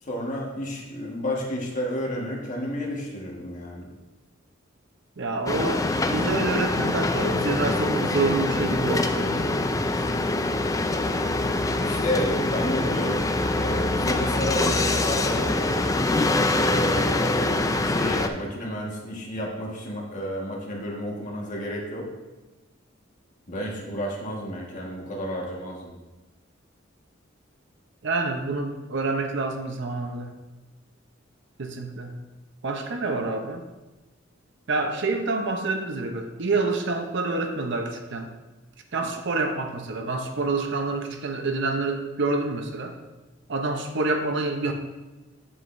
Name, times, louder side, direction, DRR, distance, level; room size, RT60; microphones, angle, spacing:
voice 1, 0.0-3.9 11.8-15.9 16.6-22.0 23.5-25.9, equal, 40° left, -2 dB, 1.6 m, -31 dB
voice 2, 5.2-9.7 28.0-30.3 31.6-32.2 32.6-33.6 34.7-38.3 38.9-43.0 43.5-44.7, right 3 dB, 65° right, 5 dB, 0.8 m, -27 dB
sound 1, 5.5-18.3, left 2 dB, 15° left, 0.4 m, -24 dB
8.1 x 7.8 x 2.6 m, 1.1 s
head